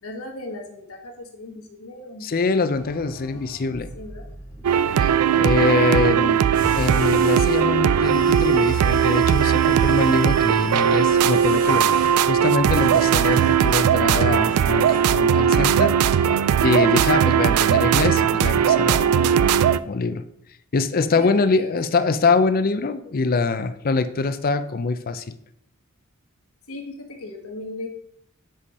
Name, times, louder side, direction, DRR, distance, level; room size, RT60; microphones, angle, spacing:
voice 1, 0.0-2.3 3.9-4.3 17.2-17.6 21.1-21.7 26.7-27.9, left 2 dB, 70° left, 1 dB, 1.4 m, -37 dB
voice 2, 2.2-3.9 5.0-6.5 6.7-16.3 16.6-19.5 19.8-20.2 20.7-25.4, left 4 dB, 40° left, 11 dB, 0.5 m, -24 dB
sound 1, 2.7-16.9, equal, 10° left, 1.4 m, -41 dB
sound 2, 4.6-19.8, right 8 dB, 80° right, 0.3 m, -19 dB
sound 3, 6.5-7.6 8.0-12.2 12.7-13.8 14.2-15.0, right 1 dB, 40° right, 2.1 m, -41 dB
7.5 x 5.0 x 4.2 m, 0.74 s
head